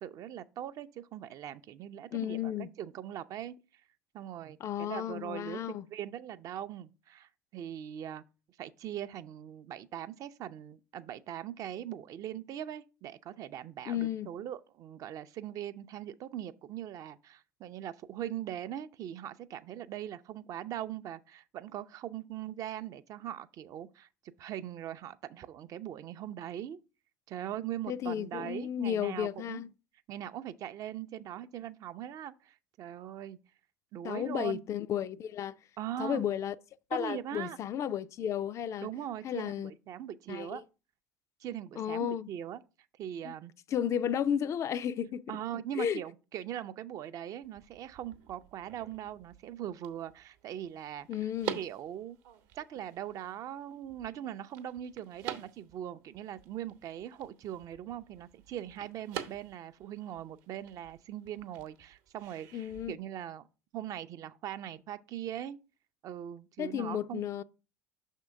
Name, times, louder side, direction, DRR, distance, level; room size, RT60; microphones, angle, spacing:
voice 1, 0.0-3.6 4.1-8.2 8.6-24.1 24.4-26.8 27.3-29.6 30.1-33.4 33.9-34.6 35.8-36.2 36.9-37.6 38.8-40.6 41.4-42.6 43.0-43.5 45.3-51.1 51.5-52.2 52.5-63.4 63.7-65.6 66.0-67.2, right 11 dB, 45° right, 0.4 m, -41 dB
voice 2, 2.1-2.7 4.6-5.9 13.9-14.3 27.9-29.7 34.0-35.5 36.0-36.6 36.9-38.9 39.2-39.7 40.3-40.6 41.8-42.3 43.2-43.3 43.7-46.0 51.1-51.6 62.5-62.9 66.6-67.4, left 9 dB, 40° left, 0.3 m, -33 dB
sound 1, 47.4-62.9, right 11 dB, 60° right, 0.8 m, -47 dB
6.1 x 3.6 x 5.3 m
figure-of-eight pair, 70°, 8 cm